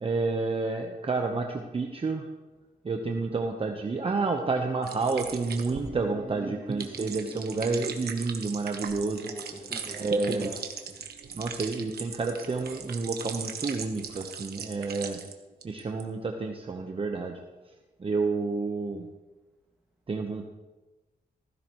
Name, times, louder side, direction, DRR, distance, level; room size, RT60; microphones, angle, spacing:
voice 1, 0.0-2.2 2.8-9.3 9.9-10.5 11.3-15.2 15.6-17.4 18.0-19.1 20.1-20.5, right 3 dB, 35° right, 3 dB, 1.0 m, -30 dB
sound 1, 4.8-15.3 15.6-16.0, right 6 dB, 85° right, 1.2 m, -39 dB
voice 2, 5.6-7.5 9.2-11.0, right 1 dB, ahead, -3 dB, 2.0 m, -44 dB
16.0 x 15.0 x 3.1 m, 1.1 s
wide cardioid pair, 105°, 16 cm